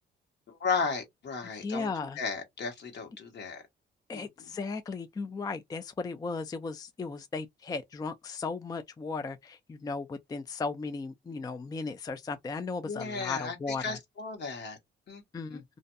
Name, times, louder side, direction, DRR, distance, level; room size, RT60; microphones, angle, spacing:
voice 1, 0.5-1.9 2.2-3.6 4.1-4.2 12.9-14.8 15.1-15.2 15.5-15.6, left 5 dB, 60° left, 1.2 m, -34 dB
voice 2, 1.4-2.2 4.1-14.0 15.3-15.6, left 4 dB, 20° left, 0.3 m, -36 dB
2.5 x 2.2 x 2.5 m
cardioid pair, 90°, 20 cm